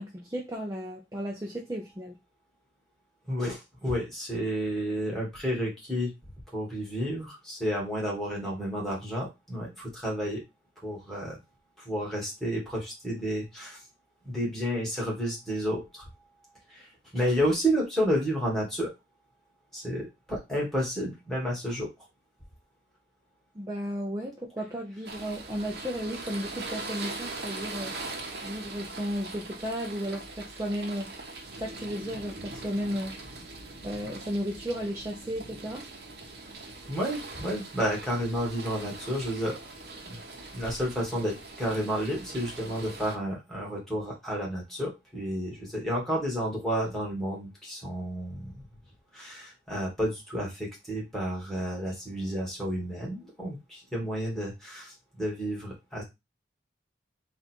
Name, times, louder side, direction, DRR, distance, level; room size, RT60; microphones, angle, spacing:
voice 1, 0.0-2.2 23.5-28.0 28.4-31.1 31.6-33.2 33.8-35.9, equal, 15° right, 0.6 m, -34 dB
voice 2, 3.3-6.1 6.5-10.4 10.8-11.4 11.8-13.8 14.2-16.1 16.7-18.9 19.7-22.1 36.9-39.6 40.0-40.2 40.5-48.6 49.1-56.0, equal, ahead, 1.7 m, -31 dB
sound 1, 25.0-43.2, right 3 dB, 60° right, 0.9 m, -41 dB
3.8 x 2.6 x 4.3 m
head